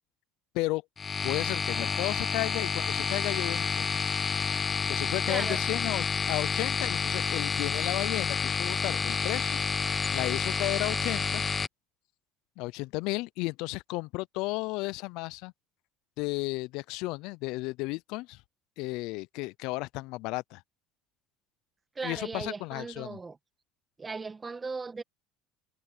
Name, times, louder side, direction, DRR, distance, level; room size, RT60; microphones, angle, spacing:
sound 1, 1.0-11.7, left 5 dB, 25° left, 0.8 m, -29 dB
voice 1, 1.2-3.9 4.9-9.6 9.9-11.4 12.6-15.5 16.2-18.4 18.8-20.6 22.0-23.2, left 22 dB, 70° left, 0.4 m, -33 dB
voice 2, 5.3-5.6 21.9-23.4 24.0-25.0, right 4 dB, 20° right, 1.5 m, -37 dB
supercardioid pair, 115°, 0 cm